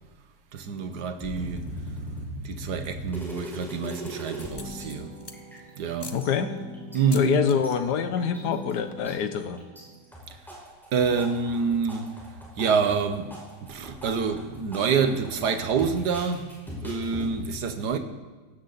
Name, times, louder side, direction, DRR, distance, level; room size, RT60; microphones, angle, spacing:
voice 1, 0.5-1.8 2.4-5.1 5.8-6.1 6.9-7.5 10.9-12.1 12.6-16.6 16.8-18.0, right 5 dB, 70° right, 1.7 m, -27 dB
sound 1, 1.2-4.5 4.8-4.9 5.2-5.9 6.2-7.7 8.2-8.7 9.0-9.8 10.1-17.3, equal, ahead, 5.3 m, -39 dB
sound 2, 2.9-3.3 3.8-5.6 6.0-6.2 6.9-7.6 7.9-8.2 8.4-8.5 8.7-9.2, left 3 dB, 20° left, 0.7 m, -44 dB
sound 3, 4.5-10.2, equal, 15° right, 3.8 m, -43 dB
voice 2, 6.1-6.5 7.1-9.6, left 7 dB, 75° left, 1.5 m, -26 dB
16.5 x 15.5 x 4.2 m
omnidirectional pair, 1.9 m